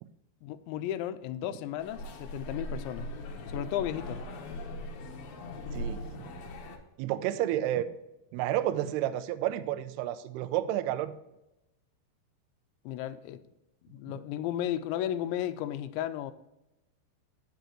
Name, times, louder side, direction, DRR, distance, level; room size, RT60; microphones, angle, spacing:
voice 1, 0.4-3.1 3.5-4.2 12.9-13.5 13.8-16.3, left 11 dB, 85° left, 2.8 m, -34 dB
sound 1, 1.8-6.8, left 1 dB, 70° left, 2.6 m, -39 dB
voice 2, 5.7-6.3 7.0-7.9 8.3-11.1, right 12 dB, 85° right, 2.3 m, -30 dB
10.5 x 8.2 x 3.0 m
omnidirectional pair, 5.3 m